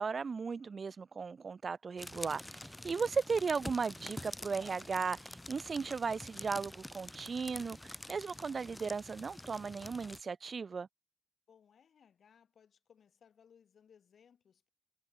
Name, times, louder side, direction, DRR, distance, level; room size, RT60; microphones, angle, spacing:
voice 1, 0.0-10.9, right 5 dB, 50° right, 0.4 m, -36 dB
sound 1, 2.0-10.2, left 1 dB, 10° left, 1.3 m, -47 dB
voice 2, 11.5-14.7, left 7 dB, 70° left, 6.7 m, -65 dB
cardioid pair, 75°, 0 cm